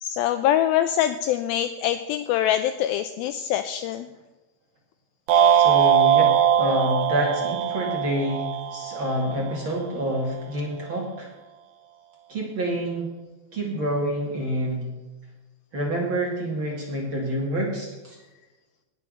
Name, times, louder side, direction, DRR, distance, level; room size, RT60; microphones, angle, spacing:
voice 1, 0.0-4.1, left 11 dB, 85° left, 10 dB, 2.1 m, -24 dB
sound 1, 5.3-9.6, right 9 dB, 70° right, 2.0 m, -21 dB
voice 2, 5.5-11.3 12.3-13.1 13.5-14.8 15.7-18.2, right 1 dB, 35° right, -2 dB, 2.5 m, -27 dB
18.5 x 6.3 x 6.5 m, 1.1 s
omnidirectional pair, 4.7 m